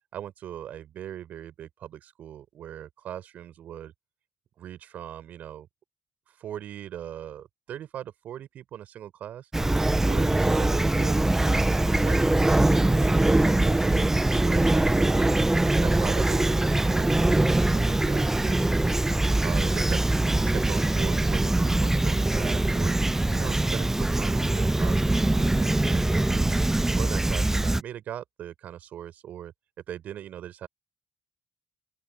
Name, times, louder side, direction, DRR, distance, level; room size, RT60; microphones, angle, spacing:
voice 1, 0.1-3.9 4.6-5.7 6.3-9.5 10.0-11.2 11.9-15.3 15.8-18.9 19.4-23.0 23.3-26.6 26.9-29.5 29.9-30.7, right 10 dB, 60° right, 4.8 m, -39 dB
Fowl / Chirp tweet, 9.5-27.8, right 2 dB, 15° right, 0.5 m, -23 dB
open air
figure-of-eight pair, 40°, 3 cm